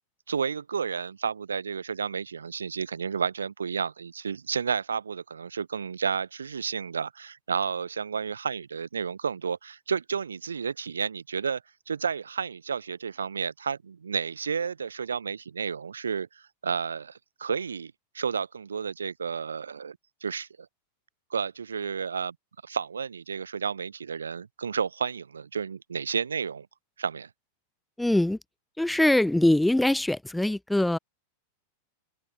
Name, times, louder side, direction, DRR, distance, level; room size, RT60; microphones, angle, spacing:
voice 1, 0.3-11.6 11.9-20.5 21.3-22.3 22.6-26.7 27.0-27.3, right 6 dB, 70° right, 0.7 m, -31 dB
voice 2, 28.0-28.4 28.8-31.0, left 1 dB, 5° left, 0.5 m, -23 dB
open air
figure-of-eight pair, 90°, 0 cm